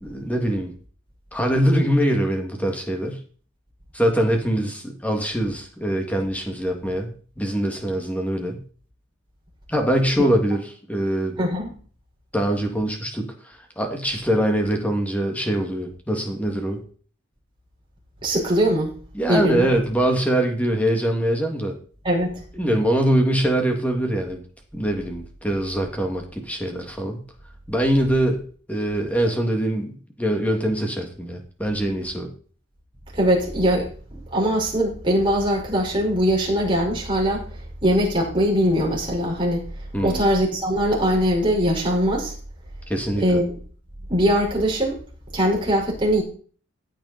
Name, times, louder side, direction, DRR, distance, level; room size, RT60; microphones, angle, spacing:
voice 1, 0.0-0.7 1.3-3.2 3.9-7.1 7.4-8.6 9.7-11.4 12.3-16.8 19.1-21.7 22.5-24.4 24.7-27.2 27.7-28.4 28.7-32.3 39.9-40.2 42.9-43.4, right 1 dB, 5° left, 2 dB, 2.7 m, -23 dB
voice 2, 11.4-11.7 18.2-18.9 19.3-19.7 22.0-22.4 33.1-33.9 34.3-37.4 37.8-39.6 40.0-42.3 43.2-43.4 44.1-45.0 45.3-46.2, equal, 25° right, -2 dB, 5.4 m, -21 dB
15.5 x 9.0 x 4.5 m, 0.43 s
head